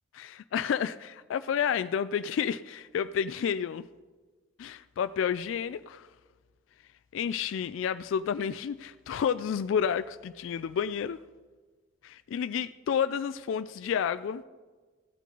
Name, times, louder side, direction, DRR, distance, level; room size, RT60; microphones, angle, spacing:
voice 1, 0.1-3.9 4.6-6.1 7.1-11.2 12.0-14.4, left 7 dB, 85° left, 13 dB, 0.3 m, -30 dB
15.5 x 8.3 x 3.8 m, 1.4 s
head